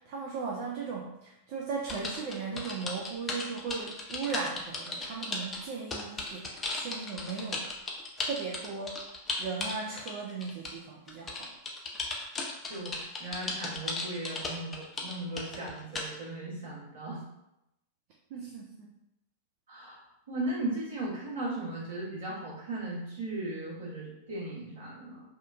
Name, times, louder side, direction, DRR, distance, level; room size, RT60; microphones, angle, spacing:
voice 1, 0.0-7.6 8.2-9.0 9.4-11.5 18.3-18.9, right 5 dB, 45° right, -2 dB, 0.4 m, -37 dB
sound 1, 1.8-10.8 11.1-16.1, left 3 dB, 20° left, 0.5 m, -36 dB
voice 2, 12.7-17.2 19.7-25.2, right 2 dB, 65° right, -8 dB, 1.3 m, -37 dB
2.8 x 2.1 x 2.4 m, 0.87 s
figure-of-eight pair, 90°, 0 cm